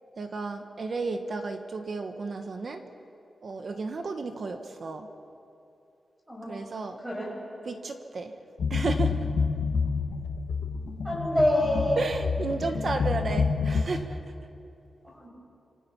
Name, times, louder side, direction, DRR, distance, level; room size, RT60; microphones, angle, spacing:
voice 1, 0.2-2.9 3.4-5.1 6.5-7.0 7.7-8.4 8.7-9.3 12.0-14.2, right 3 dB, 45° right, 6 dB, 1.4 m, -33 dB
voice 2, 6.3-6.7 7.0-7.3 11.0-12.0 15.0-15.3, left 1 dB, 5° right, -3 dB, 6.7 m, -26 dB
sound 1, 8.6-13.8, left 5 dB, 75° left, 2.5 m, -28 dB
27.0 x 26.0 x 5.8 m, 2.7 s
wide cardioid pair, 180°, 0 cm